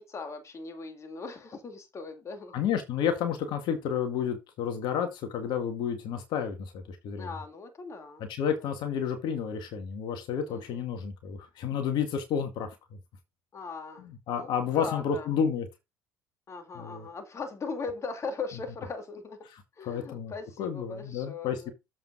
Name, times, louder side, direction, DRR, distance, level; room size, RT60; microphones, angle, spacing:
voice 1, 0.0-2.6 7.2-8.3 10.5-10.8 13.5-15.3 16.5-19.4 19.8-21.7, left 4 dB, 35° left, 2.3 m, -39 dB
voice 2, 2.5-7.3 8.3-12.8 14.0-15.7 16.7-17.1 19.5-20.3 20.6-21.7, left 7 dB, 60° left, 2.0 m, -31 dB
7.6 x 5.5 x 4.7 m
hypercardioid pair, 75°, 8 cm